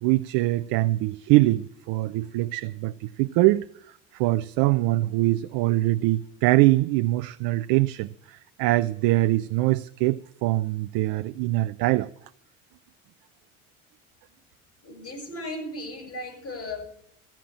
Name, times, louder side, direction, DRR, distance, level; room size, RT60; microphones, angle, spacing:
voice 1, 0.0-3.6 4.1-12.1, right 18 dB, 65° right, 0.6 m, -23 dB
voice 2, 14.8-16.9, left 1 dB, 35° left, 7.8 m, -36 dB
15.5 x 6.0 x 8.9 m
hypercardioid pair, 70°, 38 cm